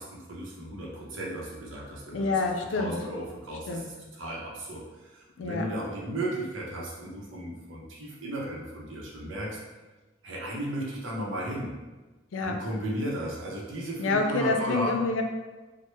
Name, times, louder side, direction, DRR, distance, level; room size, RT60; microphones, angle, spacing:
voice 1, 0.0-2.4 2.7-9.6 10.2-11.7 12.4-15.0, right 1 dB, 90° right, -3 dB, 0.7 m, -35 dB
voice 2, 2.1-3.0 3.7-3.9 5.4-5.7 12.3-12.6 14.0-15.2, left 3 dB, 80° left, 3 dB, 0.4 m, -27 dB
3.2 x 2.1 x 3.1 m, 1.2 s
head